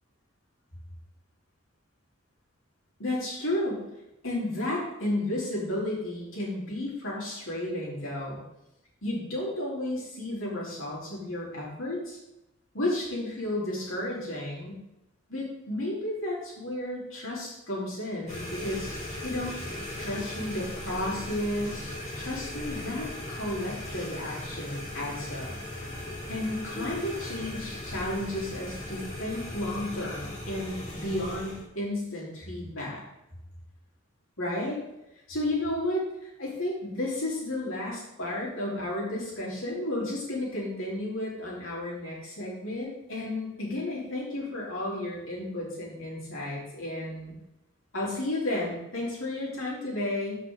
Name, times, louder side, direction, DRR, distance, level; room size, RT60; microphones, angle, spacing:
voice 1, 3.0-3.9 4.2-8.4 9.0-12.2 12.7-14.8 15.3-18.9 19.2-19.5 20.0-25.5 26.3-33.0 34.4-34.8 35.3-47.3 47.9-50.4, left 1 dB, 75° left, -5 dB, 3.5 m, -32 dB
sound 1, 18.3-31.6, left 1 dB, 35° left, 3.2 m, -38 dB
5.9 x 5.9 x 6.3 m, 0.91 s
head